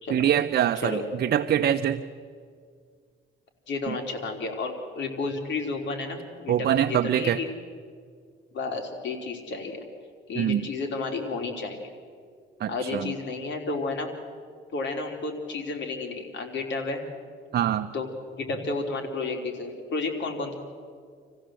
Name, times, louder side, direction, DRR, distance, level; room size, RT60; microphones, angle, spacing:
voice 1, 0.1-2.0 3.9-4.0 6.5-7.4 10.3-10.6 12.6-13.1 17.5-17.9, right 10 dB, 55° right, 8 dB, 0.7 m, -24 dB
voice 2, 3.7-7.5 8.5-9.8 10.3-11.9 12.7-14.1 14.7-17.0 17.9-18.1 18.4-20.5, left 3 dB, 65° left, 3 dB, 3.5 m, -31 dB
26.5 x 15.5 x 7.7 m, 2.1 s
cardioid pair, 90°, 20 cm